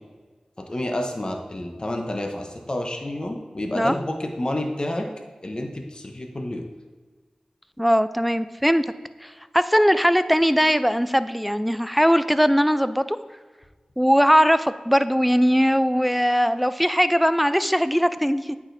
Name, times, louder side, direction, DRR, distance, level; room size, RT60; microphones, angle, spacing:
voice 1, 0.6-5.1 5.4-6.6, left 1 dB, 40° left, 3 dB, 0.8 m, -29 dB
voice 2, 7.8-8.9 9.2-13.2 14.0-18.6, equal, ahead, 13 dB, 0.3 m, -20 dB
8.7 x 4.8 x 2.6 m, 1.4 s
cardioid pair, 45°, 2 cm